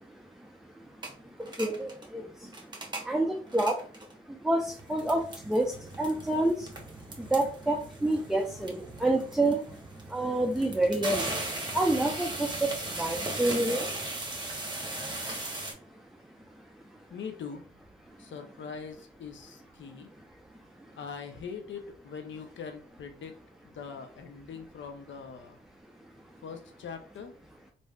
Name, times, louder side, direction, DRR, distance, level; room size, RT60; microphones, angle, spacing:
sound 1, 1.0-1.1 1.4-2.1 2.4-3.1 3.5-4.1 4.6-15.7, right 2 dB, 20° right, 1.0 m, -38 dB
voice 1, 1.6-2.2 3.1-3.7 4.4-6.7 7.3-9.6 10.1-11.2 11.7-12.7 13.0-13.8, right 1 dB, ahead, 1 dB, 0.5 m, -27 dB
voice 2, 17.1-17.6 18.2-20.1 21.0-23.4 23.6-25.6 26.4-27.3, left 6 dB, 65° left, 7 dB, 0.6 m, -42 dB
3.2 x 2.6 x 2.3 m, 0.43 s
supercardioid pair, 60°, 21 cm